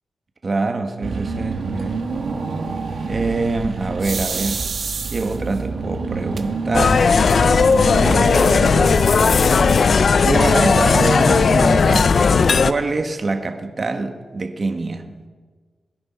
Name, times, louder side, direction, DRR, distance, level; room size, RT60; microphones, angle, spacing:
voice 1, 0.4-2.0 3.0-4.7 5.1-7.1 7.8-8.9 10.1-15.1, right 3 dB, 45° right, 6 dB, 1.5 m, -24 dB
Car / Engine, 1.0-10.2, right 4 dB, 80° right, 1.9 m, -28 dB
sound 1, 4.0-5.6 6.4-6.5 6.9-7.0 7.2-7.8, right 5 dB, 65° right, 1.0 m, -28 dB
sound 2, 6.7-12.7, left 5 dB, 65° left, 0.5 m, -15 dB
22.0 x 10.0 x 4.5 m, 1.4 s
cardioid pair, 75°, 0 cm